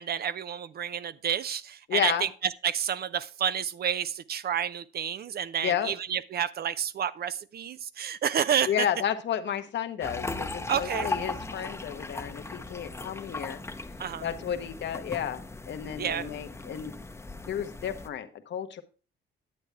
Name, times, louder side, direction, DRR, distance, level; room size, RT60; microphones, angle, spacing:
voice 1, 0.0-8.9 10.7-11.1 14.0-14.3 16.0-16.3, right 8 dB, 50° right, 15 dB, 0.6 m, -30 dB
voice 2, 1.9-2.2 5.6-5.9 8.7-13.6 14.2-15.4 15.7-16.9 17.5-18.8, left 9 dB, 65° left, 7 dB, 1.0 m, -32 dB
sound 1, 10.0-18.1, left 2 dB, 15° left, 0.8 m, -38 dB
9.7 x 7.9 x 3.4 m, 0.36 s
cardioid pair, 90°, 20 cm